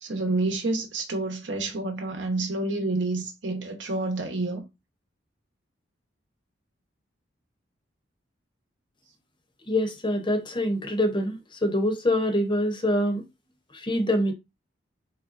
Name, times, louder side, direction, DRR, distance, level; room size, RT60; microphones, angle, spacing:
voice 1, 0.0-4.6, right 2 dB, 75° right, 0.9 m, -28 dB
voice 2, 9.7-13.2 13.7-14.3, left 1 dB, 25° left, 0.6 m, -25 dB
3.8 x 3.3 x 2.5 m
head